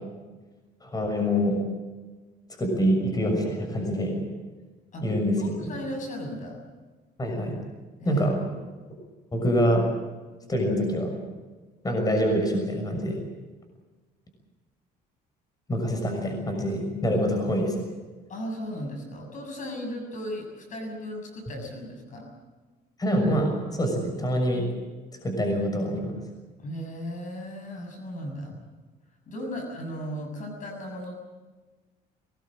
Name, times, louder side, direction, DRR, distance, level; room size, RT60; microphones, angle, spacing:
voice 1, 0.8-1.6 2.6-4.2 5.0-5.7 7.2-7.6 8.0-8.4 9.3-9.8 10.5-11.1 11.8-13.2 15.7-17.8 23.0-24.7 25.2-26.2, equal, 20° left, 3 dB, 6.5 m, -25 dB
voice 2, 5.4-6.6 8.0-8.2 8.6-8.7 18.3-22.3 26.6-28.6 29.3-31.1, equal, 50° left, 3 dB, 6.8 m, -36 dB
22.0 x 20.0 x 7.6 m, 1.3 s
cardioid pair, 110°, 17 cm